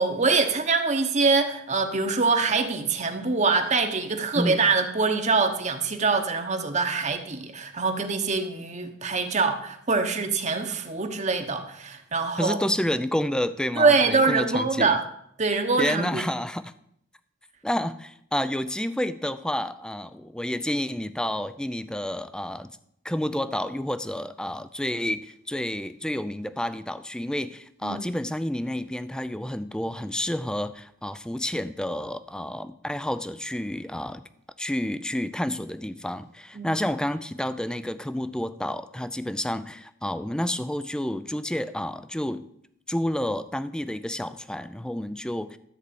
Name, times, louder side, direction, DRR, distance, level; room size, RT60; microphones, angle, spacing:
voice 1, 0.0-12.6 13.8-15.0 15.4-16.2 27.8-28.1 36.5-36.8, right 4 dB, 35° right, 5 dB, 1.1 m, -24 dB
voice 2, 12.4-15.0 15.8-16.7 17.6-22.7 23.0-34.2 34.6-42.5 42.9-45.6, left 1 dB, 5° left, 13 dB, 0.4 m, -30 dB
13.5 x 4.7 x 8.5 m, 0.72 s
head